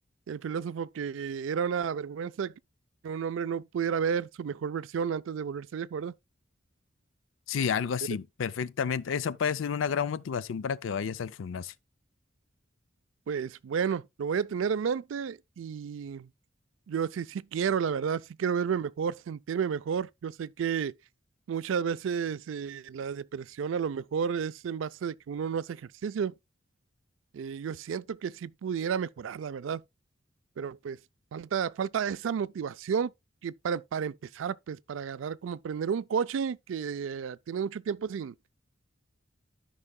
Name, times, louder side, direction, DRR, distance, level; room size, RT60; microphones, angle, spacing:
voice 1, 0.3-2.5 3.0-6.1 13.3-16.3 16.9-20.9 21.5-26.3 27.3-29.8 30.6-31.0 31.3-33.1 33.4-38.3, right 7 dB, 85° right, 0.4 m, -32 dB
voice 2, 7.5-11.7, left 7 dB, 90° left, 0.4 m, -30 dB
13.5 x 5.5 x 2.2 m
head